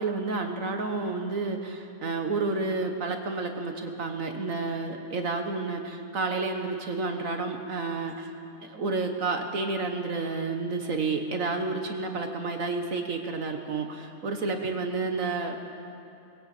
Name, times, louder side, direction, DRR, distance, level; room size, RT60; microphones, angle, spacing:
voice 1, 0.0-8.3 8.6-15.6, right 3 dB, 65° right, 4 dB, 1.6 m, -30 dB
20.5 x 16.5 x 8.3 m, 2.7 s
omnidirectional pair, 1.5 m